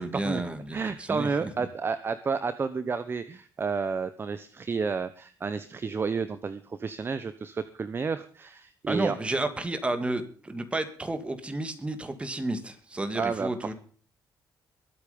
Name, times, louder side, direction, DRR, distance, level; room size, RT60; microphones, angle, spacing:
voice 1, 0.0-1.7 8.9-13.7, right 2 dB, 15° right, 8 dB, 2.4 m, -31 dB
voice 2, 0.7-9.2 13.1-13.5, right 5 dB, 30° right, 12 dB, 1.0 m, -31 dB
22.0 x 8.5 x 5.4 m, 0.43 s
cardioid pair, 120°, 7 cm